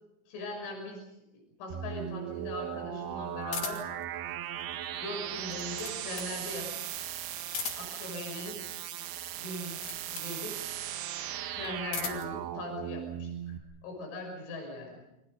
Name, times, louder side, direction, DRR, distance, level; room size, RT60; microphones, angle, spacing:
voice 1, 0.3-3.8 4.8-7.0 7.7-8.8 9.4-10.7 11.5-15.0, left 1 dB, 85° left, 3 dB, 8.5 m, -41 dB
sound 1, 1.7-13.6, right 10 dB, 70° right, 2.8 m, -38 dB
sound 2, 3.5-4.0 5.3-6.4 7.4-8.1 9.5-10.4 11.6-12.4, left 7 dB, 60° left, 4.7 m, -39 dB
29.5 x 25.0 x 5.3 m, 0.88 s
omnidirectional pair, 5.4 m